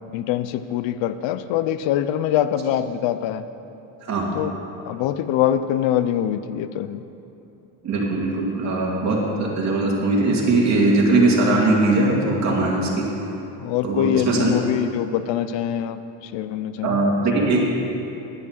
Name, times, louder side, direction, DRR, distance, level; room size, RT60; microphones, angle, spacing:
voice 1, 0.1-3.4 4.3-7.0 13.6-17.0 17.4-17.7, left 11 dB, 85° left, 12 dB, 0.7 m, -24 dB
voice 2, 7.8-13.1 13.8-14.5 16.8-17.7, right 2 dB, 40° right, -2 dB, 2.4 m, -20 dB
11.0 x 8.6 x 7.2 m, 3.0 s
cardioid pair, 155°, 43 cm